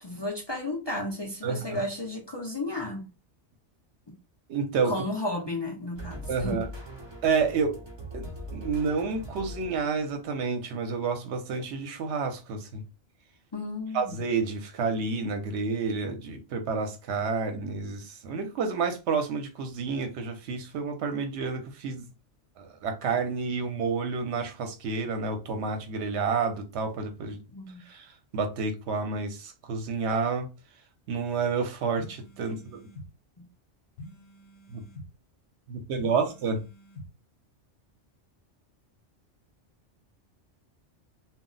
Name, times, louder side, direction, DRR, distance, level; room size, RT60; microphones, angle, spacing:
voice 1, 0.0-3.1 4.1-4.2 4.8-6.6 13.5-14.2 27.5-27.8 33.4-33.5, left 2 dB, 40° left, 0.4 m, -33 dB
voice 2, 1.4-1.8 4.5-4.9 6.3-6.7 7.2-7.8 8.1-12.8 13.9-22.1 22.6-27.4 27.9-30.5 31.1-32.8 34.7-34.8 35.7-36.6, right 5 dB, 70° right, 0.9 m, -29 dB
sound 1, 5.9-10.1, equal, 35° right, 0.5 m, -41 dB
sound 2, 32.0-33.1 34.0-35.1 36.0-37.1, left 1 dB, 60° left, 0.9 m, -46 dB
2.3 x 2.0 x 3.8 m
omnidirectional pair, 1.2 m